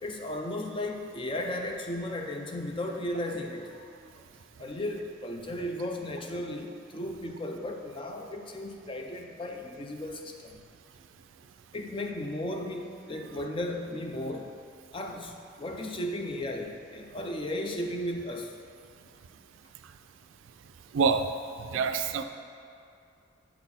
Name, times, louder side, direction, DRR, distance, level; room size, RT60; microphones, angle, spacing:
voice 1, 0.0-4.1 4.6-10.6 11.7-14.5 14.9-18.5, left 1 dB, 25° left, 3 dB, 0.4 m, -35 dB
voice 2, 20.9-21.3 21.7-22.2, right 5 dB, 85° right, 8 dB, 0.3 m, -25 dB
7.7 x 4.1 x 4.2 m, 2.5 s
head